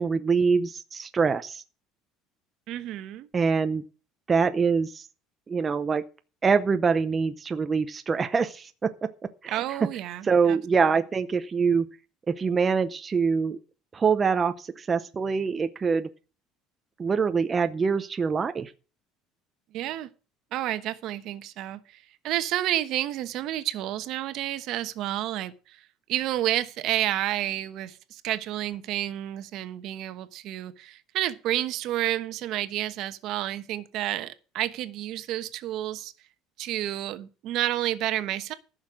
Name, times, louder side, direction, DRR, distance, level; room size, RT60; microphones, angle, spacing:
voice 1, 0.0-1.6 3.3-3.8 4.3-5.1 5.5-6.0 6.4-8.9 9.4-9.8 10.2-11.9 12.3-13.6 13.9-16.1 17.0-18.7, right 5 dB, 20° right, 0.7 m, -24 dB
voice 2, 2.7-3.3 9.5-10.6 19.7-20.1 20.5-25.8 26.1-36.1 36.6-38.5, right 13 dB, 55° right, 1.1 m, -30 dB
14.5 x 6.4 x 6.2 m
cardioid pair, 150°, 0 cm